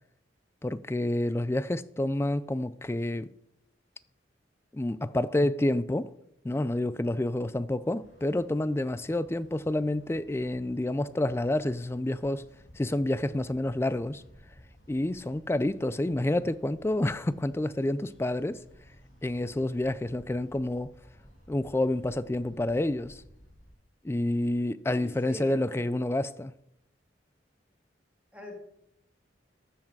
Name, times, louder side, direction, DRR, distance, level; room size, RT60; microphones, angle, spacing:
voice 1, 0.6-3.3 4.7-6.1 6.4-12.4 12.8-14.2 14.9-18.6 19.2-20.9 21.5-23.2 24.0-26.5, left 1 dB, 15° left, 0.3 m, -28 dB
sound 1, 8.0-23.7, equal, 90° left, 3.0 m, -56 dB
voice 2, 24.9-25.8 28.3-28.6, left 1 dB, 5° right, 2.3 m, -43 dB
13.0 x 7.3 x 4.7 m
head